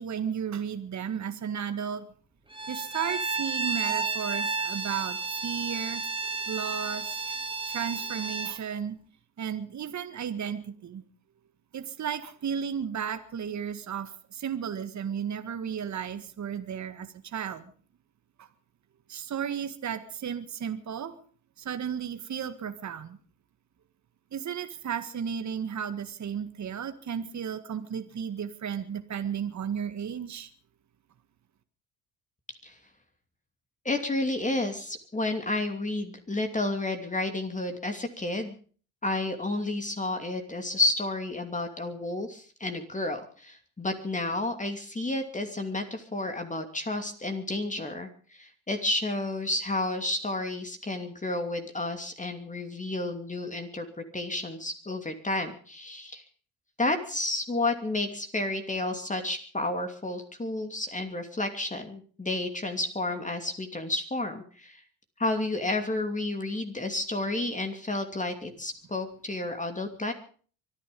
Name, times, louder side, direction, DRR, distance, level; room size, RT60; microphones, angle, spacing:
voice 1, 0.0-2.1 2.7-6.0 6.5-7.3 7.7-9.0 9.4-11.0 11.7-17.7 18.4-18.5 19.1-21.2 21.6-23.2 24.3-30.5, right 8 dB, 40° right, 9 dB, 1.8 m, -34 dB
Bowed string instrument, 2.5-8.6, right 4 dB, 10° right, 2.3 m, -32 dB
voice 2, 33.8-38.6 39.0-53.9 54.1-56.2 56.8-64.8 65.2-70.1, left 2 dB, 15° left, 5 dB, 2.7 m, -31 dB
24.5 x 11.0 x 5.4 m, 0.44 s
hypercardioid pair, 65°, 44 cm